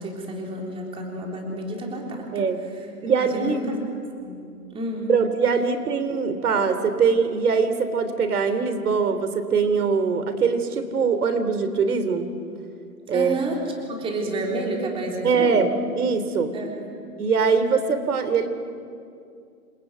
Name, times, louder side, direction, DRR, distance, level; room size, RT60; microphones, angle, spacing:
voice 1, 0.0-2.4 3.0-3.8 4.2-5.1 13.1-15.7 16.5-16.9, right 1 dB, 10° right, 0 dB, 3.6 m, -30 dB
voice 2, 3.0-3.6 5.1-12.3 13.1-13.3 15.2-16.5 17.2-18.5, right 5 dB, 70° right, 9 dB, 3.4 m, -22 dB
29.0 x 22.0 x 9.3 m, 2.3 s
hypercardioid pair, 155°, 46 cm